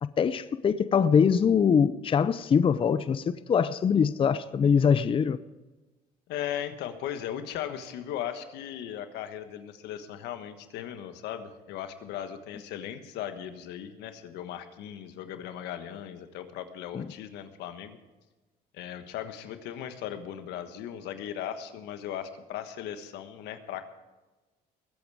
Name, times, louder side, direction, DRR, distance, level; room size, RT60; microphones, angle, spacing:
voice 1, 0.0-5.4 16.9-17.1, left 7 dB, 30° left, 0.6 m, -23 dB
voice 2, 6.3-18.0 18.7-23.9, left 10 dB, 90° left, 1.4 m, -37 dB
21.0 x 9.0 x 4.9 m
cardioid pair, 110°, 17 cm